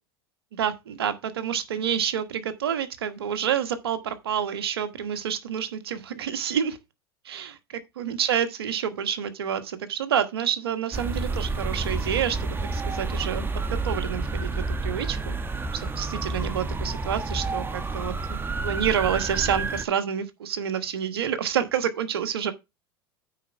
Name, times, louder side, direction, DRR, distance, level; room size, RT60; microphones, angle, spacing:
voice 1, 0.6-6.8 7.2-7.6 8.0-15.3 15.7-22.5, right 8 dB, 85° right, 1.3 m, -28 dB
sound 1, 10.9-19.8, right 3 dB, 15° right, 1.1 m, -29 dB
9.1 x 4.4 x 5.7 m
hypercardioid pair, 95°, 13 cm